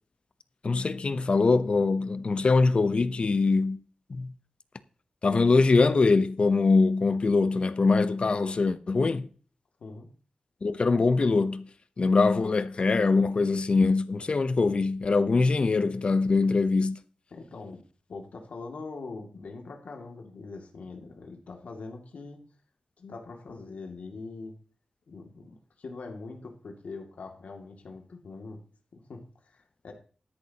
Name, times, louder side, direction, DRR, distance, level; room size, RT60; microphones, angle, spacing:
voice 1, 0.6-3.8 4.1-4.3 5.2-9.3 10.6-11.7 12.0-17.0, left 3 dB, 50° left, 0.8 m, -23 dB
voice 2, 17.3-17.8 18.1-22.4 23.0-24.5 25.1-28.6 28.9-29.9, left 3 dB, 85° left, 2.4 m, -42 dB
13.0 x 10.5 x 2.9 m
wide cardioid pair, 130°, 2 cm